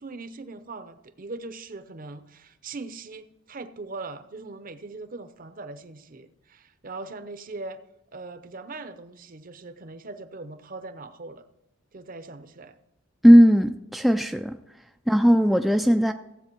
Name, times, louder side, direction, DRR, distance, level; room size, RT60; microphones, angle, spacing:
voice 1, 0.0-7.8 8.1-11.5 11.9-12.8, right 3 dB, 40° right, 0.7 m, -40 dB
voice 2, 13.2-14.6 15.1-16.1, equal, ahead, 0.3 m, -17 dB
15.5 x 8.2 x 4.5 m
head